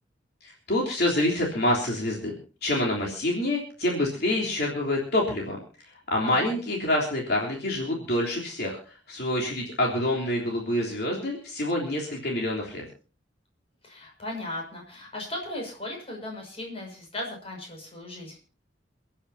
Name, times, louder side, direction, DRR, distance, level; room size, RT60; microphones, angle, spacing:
voice 1, 0.4-2.4 2.6-12.8, left 1 dB, 60° left, -2 dB, 3.5 m, -27 dB
voice 2, 6.2-6.5 13.8-18.4, left 1 dB, 30° left, 0 dB, 6.2 m, -37 dB
29.5 x 10.0 x 2.8 m, 0.38 s
head